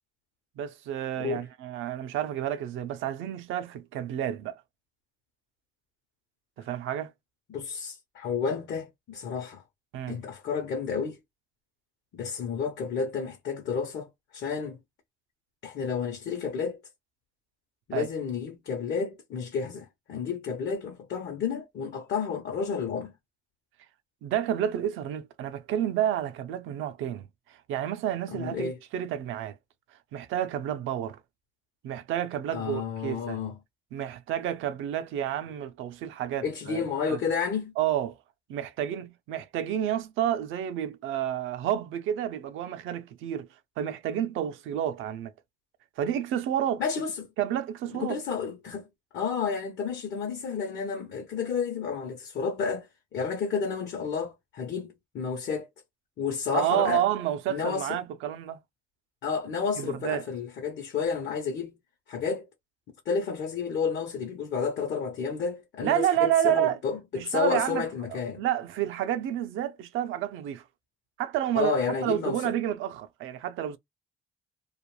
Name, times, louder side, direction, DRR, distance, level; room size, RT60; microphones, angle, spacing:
voice 1, 0.6-4.6 6.6-7.1 9.9-10.2 17.9-18.1 24.2-29.6 30.1-31.2 31.8-33.4 33.9-36.8 37.1-37.2 37.8-38.1 38.5-43.5 43.8-45.3 46.0-46.8 47.4-48.2 56.5-58.6 59.8-60.2 65.8-66.8 67.1-70.6 71.2-71.7 72.0-73.8, right 11 dB, 85° right, 0.5 m, -30 dB
voice 2, 7.5-9.6 10.1-11.2 12.1-14.8 15.6-16.8 17.9-23.1 28.3-28.8 32.5-33.6 36.4-37.7 46.8-47.3 47.9-48.9 49.1-55.7 56.2-57.0 57.5-58.0 59.2-61.8 62.1-62.5 63.1-68.4 71.6-72.5, left 6 dB, 65° left, 0.7 m, -31 dB
2.4 x 2.2 x 3.0 m
cardioid pair, 90°, 20 cm